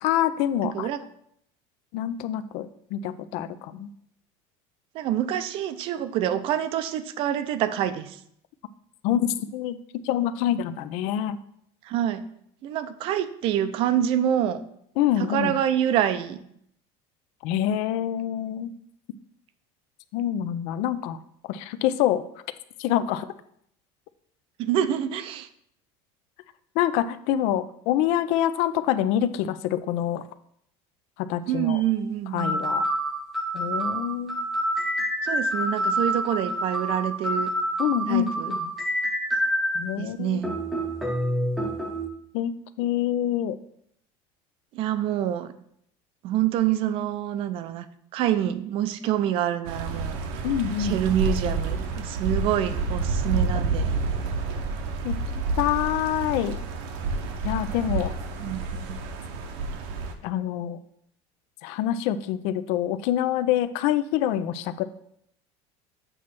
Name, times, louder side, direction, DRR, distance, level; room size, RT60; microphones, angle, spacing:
voice 1, 0.0-0.9 1.9-3.9 9.0-9.8 10.0-11.4 15.0-15.6 17.4-18.7 20.1-21.2 21.5-22.2 22.8-23.3 26.8-30.2 31.2-31.8 32.3-32.8 33.5-34.5 37.8-38.7 39.7-40.4 42.3-42.5 42.8-43.6 50.4-51.0 55.0-55.2 55.6-56.6 57.4-58.1 60.2-60.8 61.6-64.8, left 11 dB, 60° left, 13 dB, 0.5 m, -26 dB
voice 2, 0.6-1.0 4.9-8.2 11.8-12.2 12.6-14.6 15.2-16.4 24.6-25.5 31.5-32.6 35.2-37.5 38.1-38.6 40.0-40.6 44.7-45.5 46.2-47.9 48.1-50.2 50.8-54.0 58.4-58.6 58.9-59.0, right 10 dB, 45° right, 12 dB, 0.5 m, -26 dB
sound 1, 31.7-31.8 32.4-39.9 40.4-42.1, right 1 dB, ahead, 0.7 m, -27 dB
sound 2, 49.6-60.1, right 3 dB, 70° right, 0.8 m, -29 dB
7.8 x 3.1 x 5.8 m, 0.70 s
cardioid pair, 165°, 13 cm